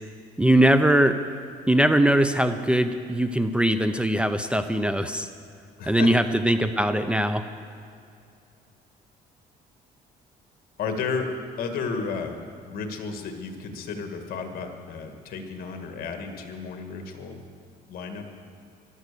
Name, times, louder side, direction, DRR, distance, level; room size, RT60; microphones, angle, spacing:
voice 1, 0.4-1.2 1.7-5.3 5.9-7.4, right 1 dB, 5° right, 9 dB, 0.6 m, -21 dB
voice 2, 5.8-6.1 10.8-11.3 11.6-12.4 12.7-17.4 17.9-18.2, left 5 dB, 60° left, 5 dB, 2.0 m, -32 dB
14.5 x 12.5 x 6.9 m, 2.4 s
cardioid pair, 110°, 17 cm